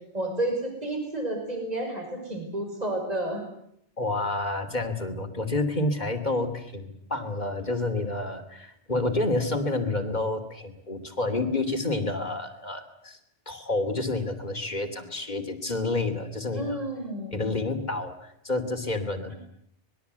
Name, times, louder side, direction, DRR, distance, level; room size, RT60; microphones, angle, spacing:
voice 1, 0.1-3.4 16.5-17.5 19.3-19.4, right 1 dB, 35° right, 3 dB, 6.0 m, -31 dB
voice 2, 4.0-13.2 13.5-16.8 17.3-19.3, left 2 dB, 40° left, 7 dB, 3.0 m, -29 dB
25.5 x 21.5 x 8.2 m, 0.72 s
omnidirectional pair, 1.2 m